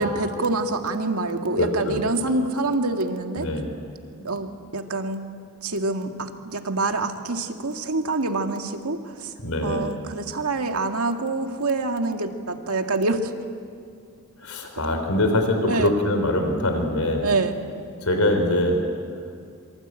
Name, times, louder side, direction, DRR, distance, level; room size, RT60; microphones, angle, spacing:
voice 1, 0.0-3.5 4.2-5.2 5.6-9.3 9.6-13.3 15.7-15.9 17.2-17.6, right 3 dB, 85° right, 4 dB, 2.1 m, -26 dB
voice 2, 1.6-2.0 3.4-3.7 4.2-4.3 9.4-9.9 14.4-17.3 18.0-18.8, left 1 dB, 80° left, 5 dB, 3.8 m, -23 dB
26.5 x 24.5 x 9.0 m, 2.2 s
head